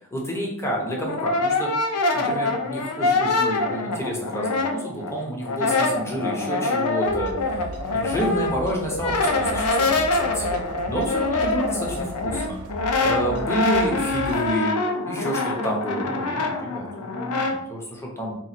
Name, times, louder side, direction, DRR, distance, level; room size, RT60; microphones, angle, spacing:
voice 1, 0.1-1.7 2.1-7.3 7.9-10.6 10.9-12.6 13.0-14.8 15.1-18.3, equal, 10° left, -1 dB, 0.7 m, -29 dB
Brass instrument, 0.7-5.1 5.4-17.6, left 3 dB, 90° left, 0.5 m, -25 dB
sound 1, 7.0-14.5, right 2 dB, 80° right, 0.5 m, -38 dB
2.9 x 2.4 x 4.1 m, 0.77 s
head